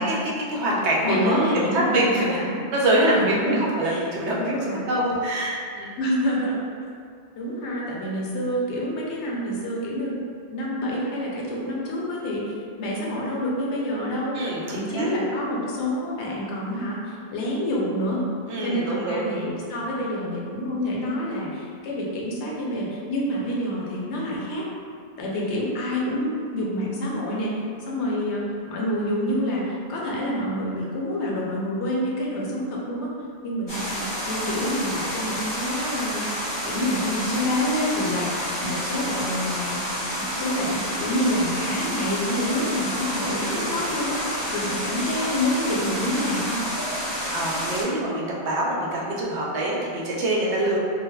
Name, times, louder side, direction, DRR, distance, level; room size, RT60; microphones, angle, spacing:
voice 1, 0.0-1.5 1.7-2.4 2.7-4.6 4.9-6.0 14.3-15.1 18.5-19.2 43.5-43.9 47.1-50.8, right 1 dB, 80° right, -4 dB, 0.8 m, -25 dB
voice 2, 1.0-2.6 2.9-4.0 4.4-4.9 6.0-6.7 7.4-10.2 10.5-12.4 12.8-14.4 14.7-18.2 18.6-24.7 25.2-33.1 33.4-36.3 36.6-40.0 40.3-44.2 44.5-46.6, equal, 80° left, -4 dB, 0.9 m, -27 dB
sound 1, 33.7-47.8, equal, 30° left, 0.5 m, -29 dB
3.1 x 2.0 x 2.2 m, 2.2 s
omnidirectional pair, 1.2 m